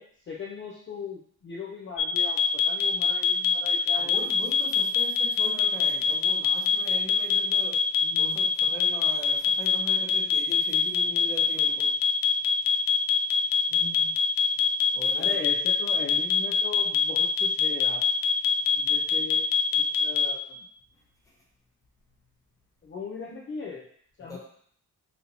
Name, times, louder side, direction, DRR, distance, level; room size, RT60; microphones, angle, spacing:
voice 1, 0.0-4.1 8.0-8.4 13.7-14.2 15.1-18.0 18.7-19.5 19.8-20.7 22.8-23.8 24.2-24.4, left 5 dB, 35° left, -3 dB, 0.5 m, -39 dB
sound 1, 2.0-20.3, left 7 dB, 80° left, 0.6 m, -23 dB
voice 2, 4.0-7.9 8.2-11.9 14.9-15.4 24.2-24.4, left 2 dB, 10° left, -4 dB, 0.9 m, -41 dB
5.4 x 2.6 x 2.8 m, 0.62 s
wide cardioid pair, 170°, 33 cm